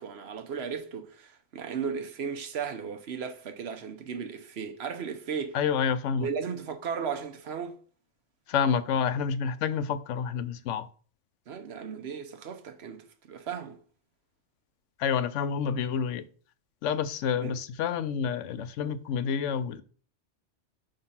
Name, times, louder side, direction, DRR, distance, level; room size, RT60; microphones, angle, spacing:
voice 1, 0.0-5.6 6.2-7.8 11.5-13.8 17.4-17.6, right 6 dB, 65° right, 1.0 m, -35 dB
voice 2, 5.5-6.3 8.5-10.9 15.0-16.3 16.8-19.8, left 7 dB, 90° left, 0.9 m, -28 dB
5.3 x 3.9 x 5.6 m
omnidirectional pair, 1.2 m